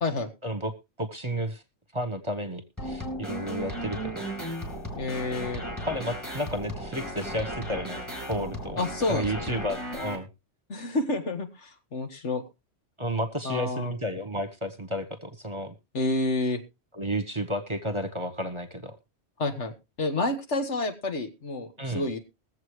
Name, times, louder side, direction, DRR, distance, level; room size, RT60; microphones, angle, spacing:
voice 1, 0.4-1.6 1.9-4.3 5.8-8.0 8.3-8.8 9.1-10.3 13.0-15.7 16.9-19.0 21.8-22.1, equal, 25° right, 8 dB, 1.1 m, -32 dB
sound 1, 2.8-10.2, equal, 15° left, 3.3 m, -35 dB
voice 2, 5.0-5.6 8.8-9.4 10.7-12.4 13.4-13.9 15.9-16.6 19.4-19.7 20.0-22.2, left 2 dB, 70° left, 6 dB, 1.9 m, -29 dB
22.0 x 7.6 x 3.1 m, 0.25 s
omnidirectional pair, 1.2 m